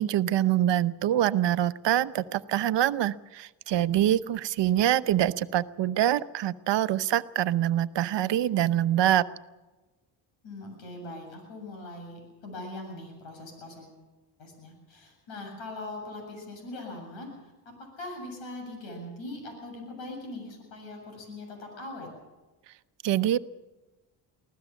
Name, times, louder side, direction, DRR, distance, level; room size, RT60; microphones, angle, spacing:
voice 1, 0.0-9.2 23.0-23.4, right 12 dB, 70° right, 13 dB, 0.9 m, -25 dB
voice 2, 10.4-13.9 14.4-17.5 18.0-22.1, left 2 dB, 90° left, 3 dB, 7.6 m, -41 dB
24.0 x 16.0 x 7.3 m, 1.2 s
cardioid pair, 85°, 45 cm